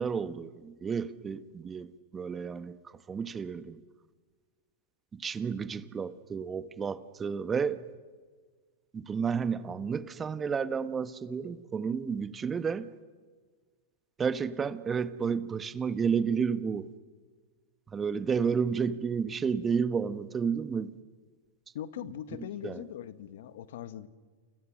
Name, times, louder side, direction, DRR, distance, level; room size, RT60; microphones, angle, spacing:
voice 1, 0.0-2.8 3.1-3.8 5.1-7.8 8.9-12.9 14.2-16.9 17.9-20.9 22.6-22.8, right 6 dB, 20° right, 1.3 m, -31 dB
voice 2, 21.7-24.1, left 11 dB, 65° left, 1.6 m, -40 dB
29.5 x 28.5 x 6.4 m
hypercardioid pair, 105°, 0 cm